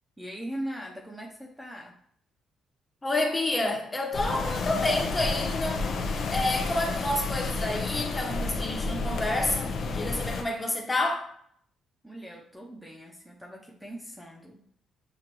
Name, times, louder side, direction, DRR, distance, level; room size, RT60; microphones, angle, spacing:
voice 1, 0.2-2.0 12.0-14.6, right 1 dB, 5° right, -1 dB, 0.7 m, -40 dB
voice 2, 3.0-5.8 6.3-11.3, left 2 dB, 20° left, 1 dB, 1.0 m, -29 dB
sound 1, 4.1-10.4, left 3 dB, 60° left, 0.6 m, -31 dB
6.7 x 2.5 x 2.9 m, 0.66 s
cardioid pair, 90°, 0 cm